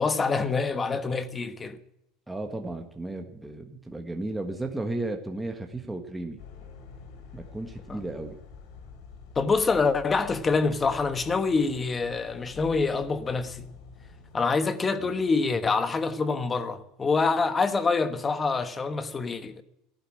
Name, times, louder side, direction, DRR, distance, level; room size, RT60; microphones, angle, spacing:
voice 1, 0.0-1.8 7.9-8.0 9.3-13.7 14.3-19.6, left 4 dB, 20° left, 1.2 m, -26 dB
voice 2, 2.3-6.4 7.3-8.4 15.0-15.1, right 2 dB, 5° right, 1.5 m, -34 dB
sound 1, 6.4-14.4, left 6 dB, 65° left, 3.0 m, -47 dB
14.5 x 11.5 x 8.6 m
supercardioid pair, 135°, 0 cm